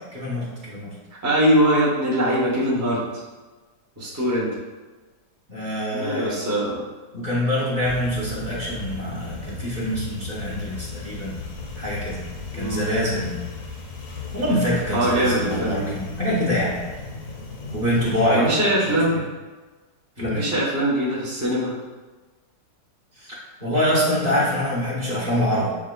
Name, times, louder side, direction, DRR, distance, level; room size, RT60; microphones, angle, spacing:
voice 1, 0.1-0.9 5.5-6.3 7.1-11.4 11.8-12.2 12.5-13.4 14.3-16.8 17.7-18.4 20.2-20.5 23.2-23.3 23.6-25.7, equal, 40° right, -6 dB, 0.9 m, -24 dB
voice 2, 1.2-3.2 4.0-4.5 5.9-6.8 12.5-12.8 14.9-15.9 18.3-19.2 20.2-21.7, right 1 dB, 20° right, -6 dB, 0.4 m, -22 dB
sound 1, 7.9-18.3, left 4 dB, 75° left, 1.3 m, -36 dB
7.1 x 2.4 x 2.2 m, 1.3 s
omnidirectional pair, 1.8 m